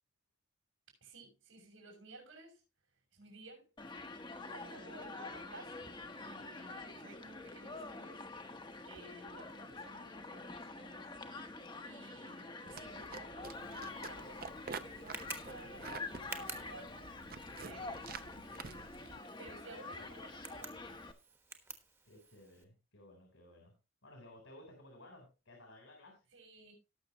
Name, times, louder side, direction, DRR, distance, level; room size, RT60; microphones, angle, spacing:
voice 1, 1.0-2.6 3.1-4.0 4.4-8.2 8.9-11.1 11.8-14.4 14.7-17.1 17.6-18.2 19.0-20.7 26.3-26.7, right 2 dB, 80° right, 6.2 m, -55 dB
Human group actions, 3.8-21.1, left 3 dB, 25° left, 0.9 m, -47 dB
sound 1, 12.6-19.2, right 5 dB, 45° right, 0.7 m, -49 dB
Tick, 13.4-22.6, right 3 dB, 15° right, 1.2 m, -52 dB
voice 2, 17.5-18.6 22.0-23.7 24.0-26.2, left 1 dB, 80° left, 3.8 m, -57 dB
18.5 x 6.5 x 3.0 m
head